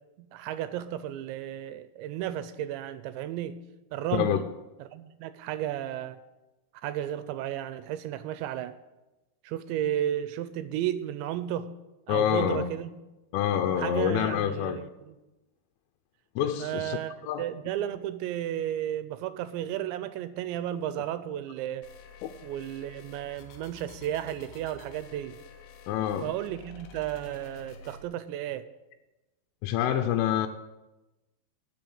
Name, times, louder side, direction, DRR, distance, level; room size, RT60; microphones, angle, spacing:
voice 1, 0.2-3.6 3.9-4.4 4.8-6.2 6.8-8.8 9.4-11.8 12.1-13.0 13.8-15.1 16.6-21.9 22.4-25.4 26.2-28.6, right 11 dB, 85° right, 13 dB, 2.7 m, -33 dB
voice 2, 12.1-12.7 13.3-14.8 16.4-17.0 17.3-17.4 22.2-22.3 25.9-26.3 29.6-30.5, left 10 dB, 85° left, 5 dB, 3.2 m, -26 dB
sound 1, 21.8-28.0, left 5 dB, 70° left, 2.6 m, -50 dB
14.0 x 6.3 x 8.7 m, 1.1 s
omnidirectional pair, 5.5 m